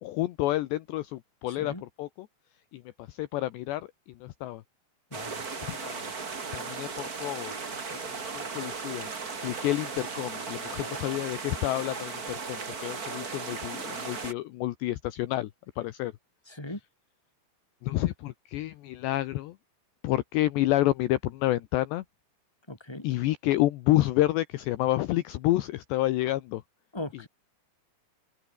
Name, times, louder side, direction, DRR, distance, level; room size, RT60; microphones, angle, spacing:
voice 1, 0.0-2.3 2.7-4.6 5.3-6.1 6.5-7.5 7.9-9.1 9.4-16.1 17.8-19.6 20.0-22.0 23.0-26.6, left 16 dB, 75° left, 2.9 m, -29 dB
voice 2, 1.5-1.8 5.1-5.5 10.7-10.9 16.5-16.8 22.7-23.1 26.9-27.3, left 1 dB, 5° left, 4.9 m, -39 dB
sound 1, 5.1-14.3, right 5 dB, 35° right, 1.5 m, -36 dB
open air
omnidirectional pair, 5.5 m